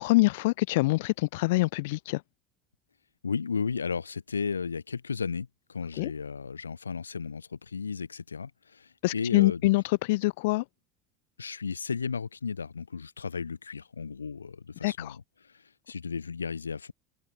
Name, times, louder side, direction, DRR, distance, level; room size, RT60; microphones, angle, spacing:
voice 1, 0.0-2.2 6.0-6.1 9.0-10.6 14.8-15.2, left 21 dB, 70° left, 0.4 m, -25 dB
voice 2, 3.2-9.6 11.4-15.2 15.4-16.9, left 5 dB, 90° left, 0.9 m, -34 dB
open air
hypercardioid pair, 75°, 0 cm